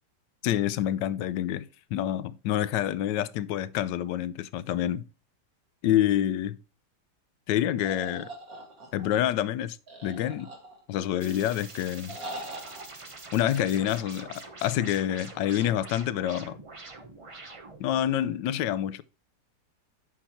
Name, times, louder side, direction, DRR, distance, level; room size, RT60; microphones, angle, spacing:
voice 1, 0.4-5.0 5.8-6.6 7.5-8.3 8.9-9.8 10.0-10.5 10.9-12.2 13.3-16.6 17.8-19.0, left 11 dB, 85° left, 1.2 m, -27 dB
sound 1, 7.8-9.2 9.9-11.0 12.1-12.8, right 1 dB, 55° right, 2.5 m, -41 dB
sound 2, 11.2-17.9, right 3 dB, 25° right, 0.7 m, -45 dB
8.1 x 5.7 x 4.4 m
omnidirectional pair, 1.9 m